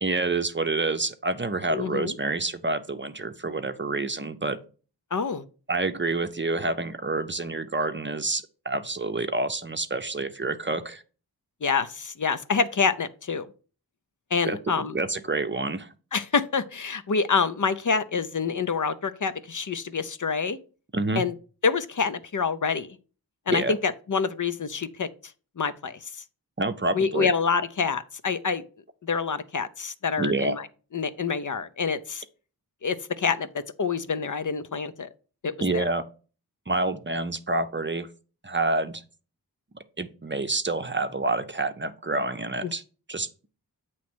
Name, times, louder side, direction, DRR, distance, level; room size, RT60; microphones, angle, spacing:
voice 1, 0.0-4.6 5.7-11.0 14.5-15.9 20.9-21.2 23.5-23.8 26.6-27.3 30.2-30.6 35.6-36.0 36.7-38.1 38.4-39.0 40.0-42.8 43.1-43.3, right 2 dB, 30° right, 0.6 m, -28 dB
voice 2, 1.7-2.1 5.1-5.4 11.6-13.5 14.3-15.0 16.1-20.6 21.2-21.3 21.6-23.0 23.5-25.1 25.6-26.2 26.9-28.6 29.0-30.7 30.9-32.2 32.8-35.1 35.4-35.9 42.6-42.7, left 5 dB, 50° left, 0.6 m, -27 dB
8.3 x 3.1 x 6.0 m
wide cardioid pair, 70°, 39 cm